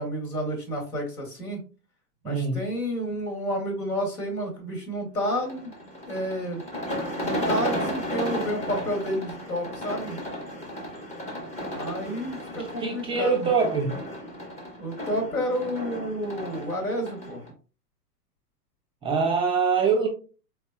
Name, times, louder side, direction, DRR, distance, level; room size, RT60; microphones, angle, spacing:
voice 1, 0.0-1.6 2.2-5.7 6.1-6.6 7.2-10.2 11.7-13.5 14.8-17.4, equal, 65° left, 2.2 m, -30 dB
voice 2, 2.2-2.6 12.8-13.9 19.0-20.1, right 5 dB, 10° right, 0.8 m, -23 dB
sound 1, 5.2-17.5, equal, 15° left, 1.0 m, -34 dB
4.5 x 4.1 x 2.3 m
figure-of-eight pair, 105°, 47 cm